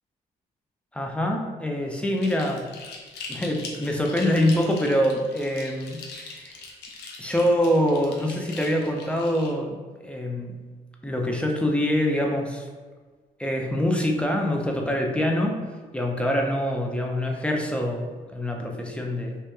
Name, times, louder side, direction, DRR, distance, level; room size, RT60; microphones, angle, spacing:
voice 1, 0.9-2.7 3.3-6.6 7.2-10.6 11.0-12.7 13.4-15.6 15.9-19.4, equal, 5° left, 1 dB, 0.4 m, -25 dB
sound 1, 2.2-9.5, left 4 dB, 85° left, 0.4 m, -41 dB
2.7 x 2.1 x 2.2 m, 1.4 s
cardioid pair, 70°, 17 cm